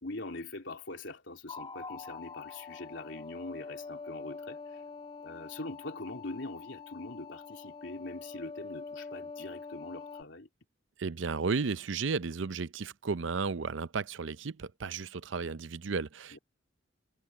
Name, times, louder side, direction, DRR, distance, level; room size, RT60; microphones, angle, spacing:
voice 1, 0.0-4.8 5.2-10.5 16.3-16.4, left 2 dB, 70° left, 3.7 m, -43 dB
sound 1, 1.5-10.2, left 4 dB, 25° left, 2.1 m, -45 dB
voice 2, 11.0-16.4, right 5 dB, 75° right, 0.6 m, -33 dB
head